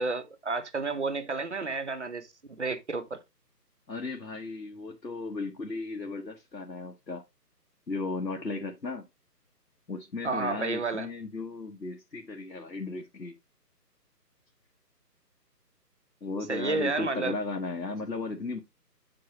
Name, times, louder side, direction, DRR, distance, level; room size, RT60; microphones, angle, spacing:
voice 1, 0.0-2.3 2.6-3.2 10.2-11.1 16.5-17.4, right 3 dB, 45° right, 0.9 m, -31 dB
voice 2, 3.9-7.2 7.9-9.1 9.9-13.3 16.2-18.6, left 3 dB, 85° left, 1.4 m, -35 dB
7.6 x 5.3 x 3.1 m
figure-of-eight pair, 150°, 49 cm